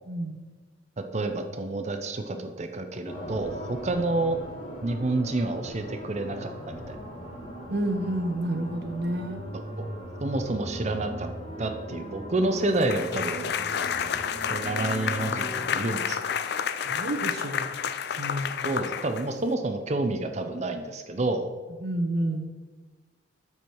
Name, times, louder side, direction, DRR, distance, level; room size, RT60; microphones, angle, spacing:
voice 1, 0.1-0.4 7.7-9.4 16.8-17.7 18.2-18.8 21.8-22.4, right 1 dB, 55° right, 5 dB, 0.9 m, -29 dB
voice 2, 1.1-4.4 4.8-7.0 9.5-9.9 10.2-11.3 11.6-13.9 14.5-16.2 18.6-21.5, right 2 dB, 35° right, 7 dB, 0.6 m, -29 dB
sound 1, 3.1-15.6, right 1 dB, 30° left, 1.8 m, -39 dB
sound 2, 12.8-19.5, left 7 dB, 55° left, 0.4 m, -30 dB
12.5 x 4.8 x 4.5 m, 1.3 s
head